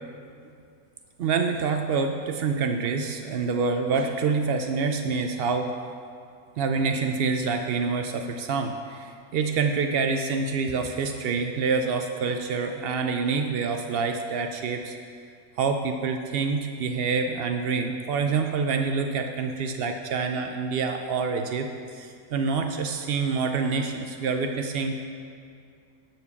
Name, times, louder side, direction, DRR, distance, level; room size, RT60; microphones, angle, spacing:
voice 1, 1.2-5.7 6.6-15.0 15.6-25.0, right 4 dB, 90° right, 5 dB, 0.5 m, -27 dB
11.5 x 4.6 x 7.0 m, 2.4 s
omnidirectional pair, 1.6 m